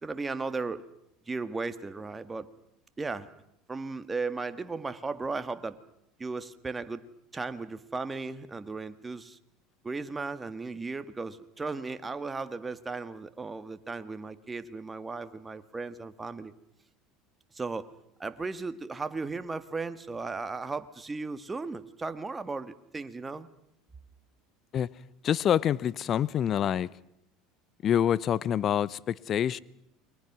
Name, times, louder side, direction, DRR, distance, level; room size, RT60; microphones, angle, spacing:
voice 1, 0.0-0.9 1.3-2.5 3.0-3.3 3.7-5.8 6.2-7.0 7.3-9.4 9.8-16.5 17.5-17.9 18.2-23.5, right 3 dB, 20° right, 1.8 m, -36 dB
voice 2, 25.2-26.9 27.8-29.6, left 9 dB, 45° left, 0.8 m, -26 dB
29.5 x 23.0 x 6.2 m
hypercardioid pair, 90°, 0 cm